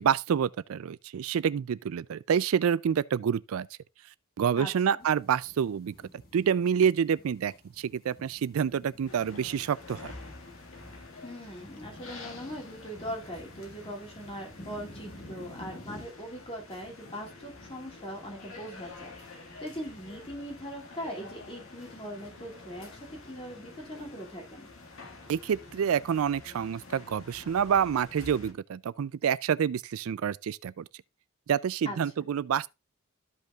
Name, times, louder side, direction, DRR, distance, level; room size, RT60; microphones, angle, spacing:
voice 1, 0.0-3.7 4.4-5.9 6.3-10.1 25.3-30.9 31.5-32.7, right 8 dB, 85° right, 0.4 m, -28 dB
voice 2, 4.6-5.1 11.2-24.7 31.8-32.3, equal, 25° left, 2.4 m, -41 dB
sound 1, 5.0-16.1, left 1 dB, 45° left, 1.5 m, -51 dB
sound 2, 9.1-28.5, left 3 dB, 80° left, 1.8 m, -48 dB
13.5 x 5.3 x 2.4 m
head